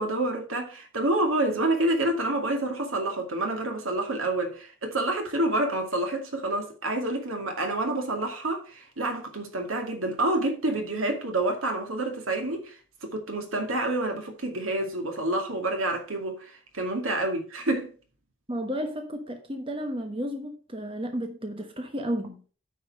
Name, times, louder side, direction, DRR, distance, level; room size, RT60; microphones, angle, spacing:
voice 1, 0.0-12.7 13.0-17.9, right 2 dB, 75° right, 2.2 m, -28 dB
voice 2, 18.5-22.5, equal, 25° right, 1.1 m, -33 dB
9.3 x 5.6 x 5.3 m
head